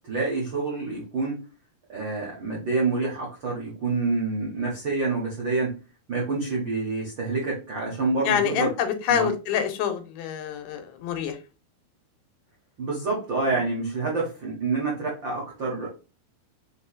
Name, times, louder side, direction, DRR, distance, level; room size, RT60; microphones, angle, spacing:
voice 1, 0.1-1.4 1.9-5.7 6.1-8.7 9.1-9.3 12.8-15.9, right 3 dB, 85° right, -4 dB, 1.0 m, -27 dB
voice 2, 8.3-11.4, left 8 dB, 90° left, 7 dB, 2.7 m, -26 dB
6.4 x 3.0 x 2.3 m, 0.32 s
omnidirectional pair, 4.4 m